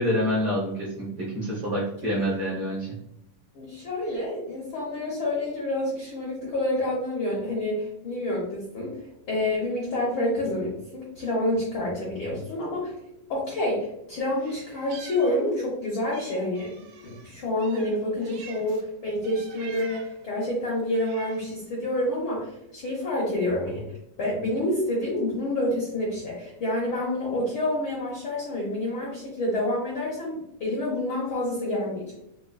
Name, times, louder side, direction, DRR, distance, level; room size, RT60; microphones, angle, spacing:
voice 1, 0.0-2.9, equal, 60° right, -6 dB, 1.3 m, -27 dB
voice 2, 3.5-9.0 9.3-12.9 13.3-23.8 24.2-32.1, left 1 dB, 70° left, -5 dB, 1.2 m, -28 dB
Meow, 14.4-15.7 16.1-18.9 19.2-20.2 20.8-21.6, right 5 dB, 80° right, 1.6 m, -47 dB
5.2 x 2.3 x 2.3 m, 0.82 s
omnidirectional pair, 3.4 m